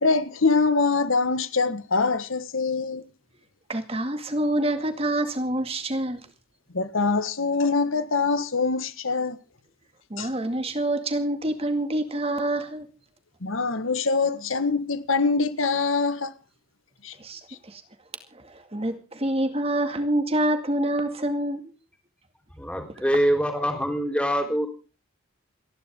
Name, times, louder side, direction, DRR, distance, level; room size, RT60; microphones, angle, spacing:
voice 1, 0.0-3.0 6.7-9.4 10.2-10.3 13.4-16.3 17.0-17.1 17.5-17.6, left 4 dB, 75° left, 1.5 m, -24 dB
voice 2, 3.7-6.2 10.1-12.9 17.2-17.8 18.3-21.7, right 1 dB, 30° right, 2.2 m, -27 dB
voice 3, 22.6-24.7, equal, 5° left, 3.9 m, -24 dB
29.0 x 11.0 x 3.7 m
head